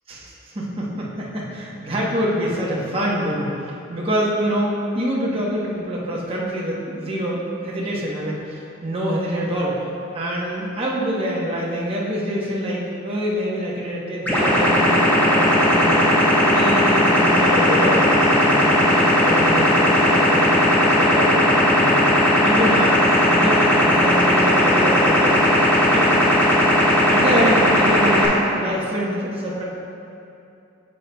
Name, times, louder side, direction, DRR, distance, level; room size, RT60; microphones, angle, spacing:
voice 1, 0.1-9.8 10.1-22.0 22.4-22.9 23.3-25.4 25.9-26.1 27.1-29.6, equal, 30° right, -5 dB, 0.9 m, -25 dB
sound 1, 14.3-28.3, left 1 dB, 10° left, 1.1 m, -17 dB
9.1 x 6.7 x 2.2 m, 2.7 s
head